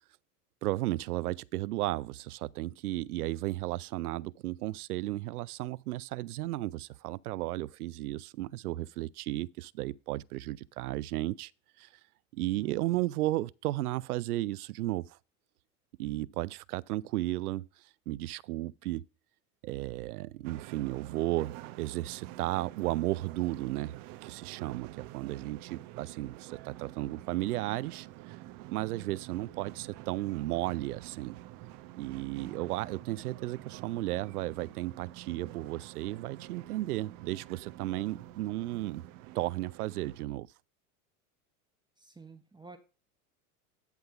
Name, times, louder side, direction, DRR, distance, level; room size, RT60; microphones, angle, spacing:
voice 1, 0.6-11.5 11.8-11.9 12.3-15.2 16.0-17.7 18.1-19.1 19.6-28.4 28.7-31.4 32.0-39.0 39.3-40.5, right 17 dB, 80° right, 0.5 m, -34 dB
voice 2, 12.5-13.0 42.0-42.8, right 4 dB, 10° right, 1.2 m, -52 dB
sound 1, 20.4-40.3, right 16 dB, 50° right, 0.8 m, -48 dB
10.5 x 3.6 x 5.6 m
hypercardioid pair, 95°, 45 cm